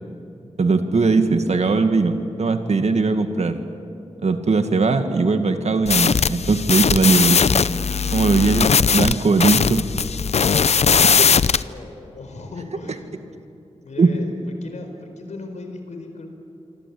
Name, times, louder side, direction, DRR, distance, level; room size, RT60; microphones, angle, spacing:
voice 1, 0.6-3.6 4.2-7.4 8.1-9.9 14.0-14.1, right 4 dB, 70° right, 7 dB, 2.0 m, -19 dB
sound 1, 5.9-11.6, left 6 dB, 65° left, 0.6 m, -19 dB
voice 2, 11.6-13.2 13.8-16.3, left 3 dB, 85° left, 5 dB, 4.5 m, -37 dB
27.0 x 25.0 x 8.6 m, 2.8 s
wide cardioid pair, 90°, 12 cm